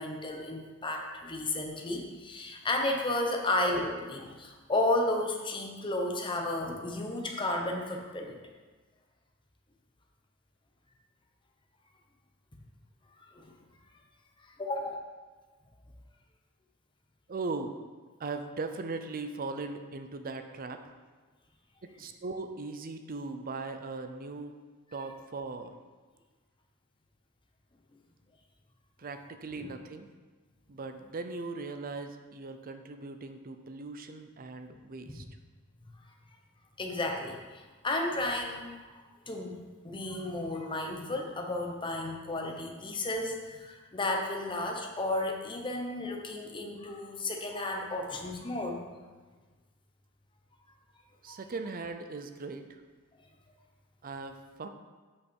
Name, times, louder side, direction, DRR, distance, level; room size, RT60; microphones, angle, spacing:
voice 1, 0.0-8.4 13.3-13.5 14.6-15.0 29.6-29.7 34.7-34.8 35.1-35.2 36.8-38.9 39.3-48.8 51.3-51.4, left 2 dB, 25° left, 2 dB, 1.0 m, -33 dB
voice 2, 17.3-17.8 18.2-21.0 21.8-24.6 24.9-25.8 29.0-30.1 30.7-35.2 51.2-52.8 54.0-54.7, right 3 dB, 45° right, 7 dB, 0.6 m, -39 dB
8.4 x 5.6 x 4.5 m, 1.3 s
head